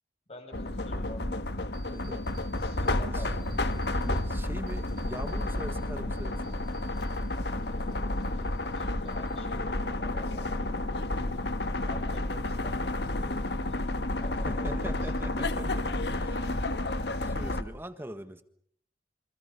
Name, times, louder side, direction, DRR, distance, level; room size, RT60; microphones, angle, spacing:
voice 1, 0.3-1.3 2.6-3.4 7.6-10.8 11.7-15.1, left 1 dB, 35° left, 6.0 m, -48 dB
sound 1, 0.5-17.6, left 2 dB, 65° left, 1.5 m, -31 dB
sound 2, 1.7-2.9 3.2-4.3 4.7-7.3 7.6-8.7 9.1-9.7, right 8 dB, 60° right, 5.0 m, -59 dB
voice 2, 1.8-2.4 2.7-2.8 3.1-3.3 4.0-6.5 14.4-16.7 17.2-18.4, right 1 dB, 10° right, 1.5 m, -42 dB
28.0 x 26.5 x 5.4 m
head